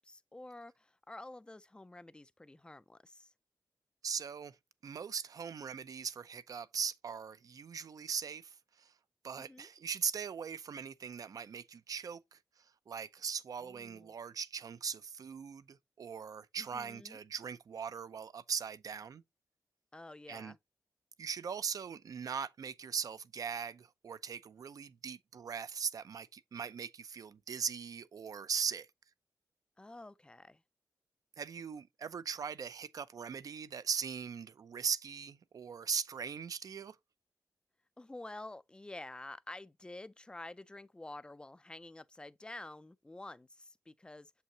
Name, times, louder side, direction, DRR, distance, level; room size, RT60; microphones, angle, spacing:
voice 1, 0.0-3.3 9.4-9.7 13.6-14.1 16.6-17.2 19.9-20.6 29.8-30.6 38.0-44.3, left 2 dB, 15° left, 0.4 m, -49 dB
voice 2, 4.0-4.6 4.8-8.9 9.2-12.4 12.9-19.2 20.3-20.5 21.2-28.9 31.4-37.0, right 6 dB, 60° right, 0.5 m, -40 dB
7.5 x 5.6 x 2.8 m
wide cardioid pair, 160°, 7 cm